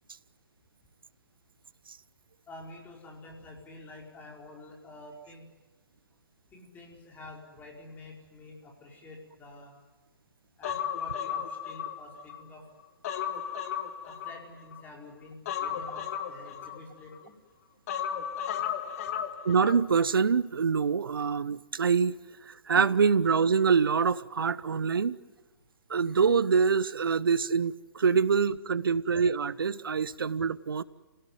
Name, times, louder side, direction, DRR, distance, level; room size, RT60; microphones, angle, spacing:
voice 1, 2.5-5.5 6.5-9.7 10.6-12.6 14.0-17.3, left 2 dB, 15° left, 0 dB, 4.8 m, -48 dB
Human voice, 10.6-12.4 12.8-14.8 15.5-17.2 17.9-19.8 20.1-20.2, left 9 dB, 40° left, 1.9 m, -34 dB
voice 2, 19.4-22.2 22.5-25.2 25.9-30.8, right 5 dB, 70° right, 18 dB, 1.0 m, -25 dB
27.5 x 18.0 x 9.4 m, 1.2 s
figure-of-eight pair, 135°, 12 cm